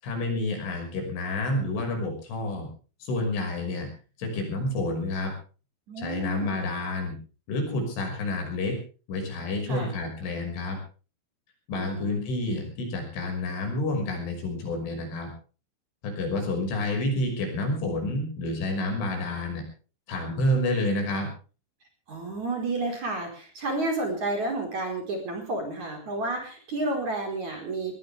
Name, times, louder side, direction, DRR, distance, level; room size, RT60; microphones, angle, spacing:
voice 1, 0.0-2.7 3.0-3.9 4.2-5.3 6.0-7.2 7.5-8.8 9.1-10.8 11.7-15.3 16.0-19.6 20.1-21.3, left 2 dB, 65° left, 3 dB, 8.2 m, -29 dB
voice 2, 5.9-6.6 9.7-9.9 11.7-12.2 22.1-28.0, right 2 dB, 35° right, 3 dB, 5.5 m, -31 dB
20.5 x 20.5 x 3.5 m, 0.37 s
omnidirectional pair, 5.9 m